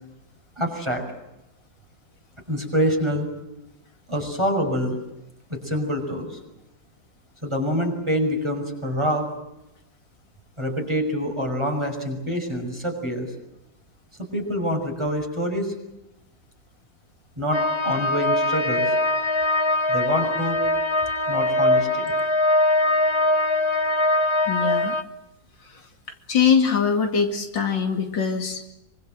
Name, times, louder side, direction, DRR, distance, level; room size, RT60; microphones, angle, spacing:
voice 1, 0.6-1.0 2.5-3.3 4.1-5.0 5.5-6.4 7.4-9.3 10.6-13.3 14.2-15.7 17.4-18.9 19.9-20.6 21.3-22.1, equal, 15° right, 2 dB, 6.0 m, -26 dB
sound 1, 17.5-25.0, left 1 dB, 20° left, 1.0 m, -22 dB
voice 2, 24.5-25.0 25.6-25.9 26.3-28.6, left 6 dB, 75° left, 4 dB, 3.1 m, -22 dB
26.0 x 24.5 x 7.8 m, 0.91 s
omnidirectional pair, 2.0 m